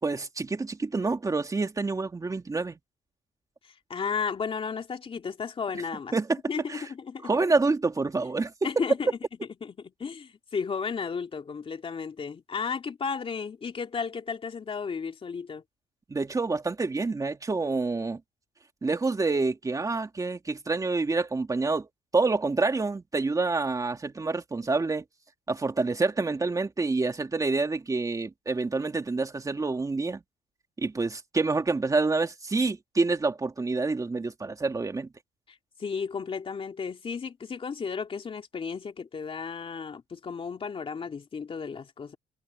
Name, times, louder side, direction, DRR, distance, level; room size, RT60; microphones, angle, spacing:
voice 1, 0.0-2.8 6.1-6.4 6.7-6.9 7.2-8.5 16.1-18.2 18.8-21.9 22.1-25.0 25.5-30.2 30.8-35.1, right 3 dB, 20° right, 2.7 m, -27 dB
voice 2, 3.9-6.1 6.5-7.3 8.6-9.2 9.6-9.7 10.0-15.6 35.8-42.2, left 5 dB, 35° left, 2.7 m, -33 dB
cardioid pair, 110°, 17 cm